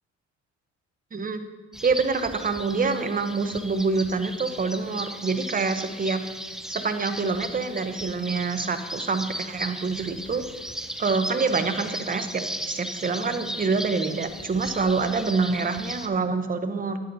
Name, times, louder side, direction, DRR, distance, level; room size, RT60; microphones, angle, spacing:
voice 1, 1.1-1.4 1.8-6.2 6.7-10.5 11.0-17.0, right 4 dB, 30° right, 9 dB, 0.8 m, -26 dB
sound 1, 1.7-16.1, equal, ahead, 0.5 m, -36 dB
11.5 x 9.3 x 2.7 m, 1.4 s
cardioid pair, 85°, 30 cm